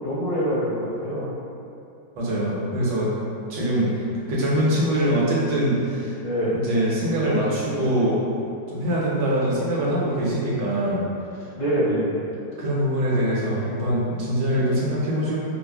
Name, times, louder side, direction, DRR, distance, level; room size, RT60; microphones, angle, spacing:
voice 1, 0.0-1.3 3.5-3.8 6.2-6.5 11.6-12.2, equal, 60° left, -15 dB, 2.1 m, -25 dB
voice 2, 2.2-3.1 3.5-3.9 4.3-6.1 6.5-8.2 8.7-11.0 12.6-15.4, right 1 dB, 70° right, -6 dB, 1.3 m, -23 dB
5.2 x 2.1 x 2.3 m, 2.7 s
omnidirectional pair, 2.0 m